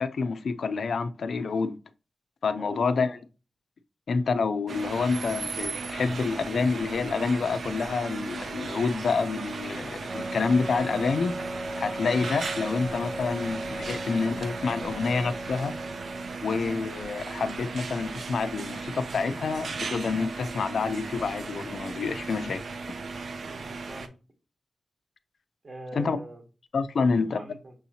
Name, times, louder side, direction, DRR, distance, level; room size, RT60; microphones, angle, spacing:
voice 1, 0.0-1.7 2.4-3.1 4.1-11.3 11.8-15.7 16.4-22.6 25.9-26.2 26.7-27.4, left 4 dB, 70° left, 0.3 m, -28 dB
voice 2, 2.5-3.2 23.4-24.1 25.6-26.4 27.0-27.7, right 1 dB, 40° right, 1.0 m, -43 dB
sound 1, 4.7-24.1, right 4 dB, 70° right, 0.4 m, -36 dB
Wind instrument woodwind instrument, 10.1-16.5, right 1 dB, 15° right, 0.8 m, -38 dB
6.1 x 2.8 x 2.8 m
wide cardioid pair, 170°, 0 cm